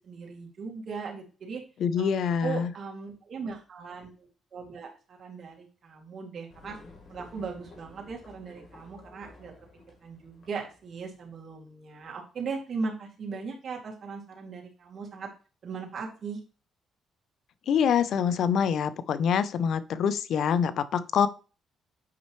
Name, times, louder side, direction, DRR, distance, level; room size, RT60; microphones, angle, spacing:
voice 1, 0.0-1.6 2.0-2.1 2.4-6.8 7.1-9.5 10.0-15.3 15.6-16.4, right 5 dB, 50° right, 0 dB, 2.5 m, -38 dB
voice 2, 1.8-2.7 17.7-21.3, left 7 dB, 70° left, 14 dB, 0.6 m, -25 dB
sound 1, 6.5-11.4, left 2 dB, 50° left, 3.3 m, -52 dB
8.4 x 5.4 x 3.1 m, 0.36 s
cardioid pair, 90°, 0 cm